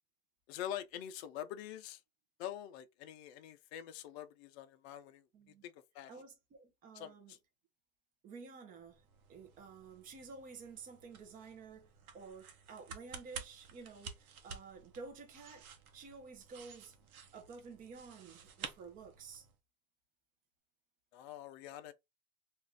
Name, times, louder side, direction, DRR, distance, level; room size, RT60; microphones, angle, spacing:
voice 1, 0.5-2.0 2.4-5.3 5.6-6.1 6.9-7.4 21.1-21.9, left 11 dB, 50° left, 0.5 m, -45 dB
voice 2, 5.3-5.6 6.1-7.3 8.2-15.7 15.9-16.9 17.3-19.5, right 4 dB, 20° right, 0.6 m, -52 dB
sound 1, 8.8-19.6, right 6 dB, 85° right, 0.8 m, -52 dB
2.5 x 2.4 x 3.2 m
hypercardioid pair, 130°, 42 cm